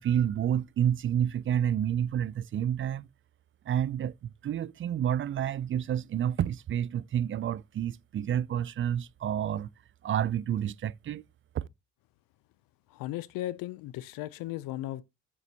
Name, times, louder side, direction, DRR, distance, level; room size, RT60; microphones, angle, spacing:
voice 1, 0.0-3.1 3.7-9.7 10.0-11.2 11.5-11.6, right 9 dB, 35° right, 0.4 m, -29 dB
voice 2, 12.9-15.0, left 15 dB, 75° left, 0.6 m, -36 dB
11.0 x 6.8 x 2.8 m
supercardioid pair, 75°, 34 cm